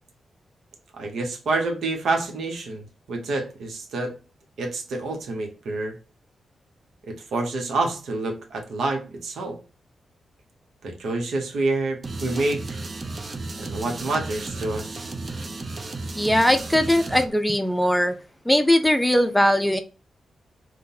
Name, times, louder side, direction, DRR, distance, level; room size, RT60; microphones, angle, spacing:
voice 1, 1.0-4.1 4.6-6.0 7.0-9.6 10.8-12.6 13.6-15.1, right 2 dB, 80° right, 3 dB, 0.8 m, -28 dB
sound 1, 12.0-17.3, right 2 dB, 40° right, 0.5 m, -34 dB
voice 2, 16.2-18.1 18.5-19.8, left 1 dB, 5° left, 8 dB, 0.5 m, -20 dB
3.7 x 2.2 x 2.7 m, 0.34 s
cardioid pair, 55°, 0 cm